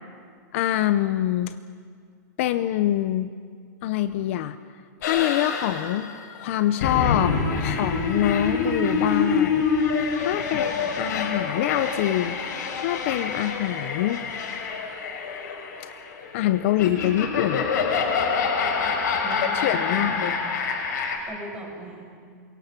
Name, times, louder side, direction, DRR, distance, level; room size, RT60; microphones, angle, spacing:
voice 1, 0.5-1.6 2.4-3.3 3.8-4.6 5.0-9.7 10.2-14.2 16.3-17.7 19.6-20.4, left 13 dB, 45° left, 11 dB, 0.6 m, -25 dB
sound 1, 5.0-21.2, left 5 dB, 70° left, 5.2 m, -26 dB
voice 2, 10.4-10.8 19.2-20.3 21.3-22.1, right 2 dB, 10° right, -1 dB, 5.5 m, -39 dB
27.0 x 23.0 x 6.0 m, 2.1 s
supercardioid pair, 165°, 10 cm